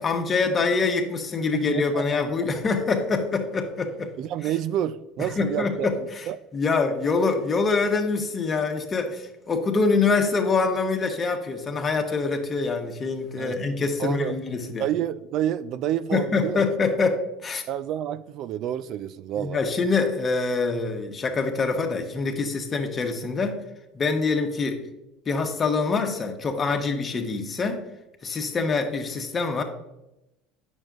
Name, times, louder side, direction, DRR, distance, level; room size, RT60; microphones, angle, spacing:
voice 1, 0.0-4.1 5.2-6.3 6.5-14.8 16.1-17.6 19.4-23.6 23.9-24.8 25.3-27.8 28.2-29.6, left 4 dB, 30° left, 4 dB, 1.2 m, -25 dB
voice 2, 1.5-2.1 4.2-5.9 6.3-6.4 13.4-13.6 14.0-14.3 14.8-16.6 17.7-19.6, right 11 dB, 55° right, 14 dB, 0.3 m, -28 dB
8.8 x 6.3 x 2.4 m, 0.91 s
supercardioid pair, 105°, 0 cm